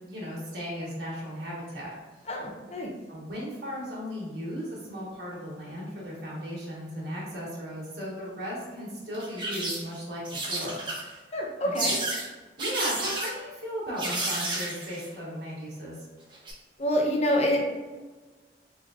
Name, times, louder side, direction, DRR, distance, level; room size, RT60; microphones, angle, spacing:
voice 1, 0.1-1.9 3.1-10.8 11.6-11.8 12.6-16.0, equal, 60° right, -5 dB, 1.4 m, -36 dB
voice 2, 2.3-2.9 11.3-12.0 16.8-17.7, equal, 35° left, -1 dB, 0.6 m, -26 dB
sound 1, 9.1-9.9 10.2-11.2 11.7-12.3 12.6-13.3 14.0-15.1 16.3-16.5, right 2 dB, 25° right, 0.8 m, -31 dB
3.7 x 3.3 x 2.4 m, 1.3 s
head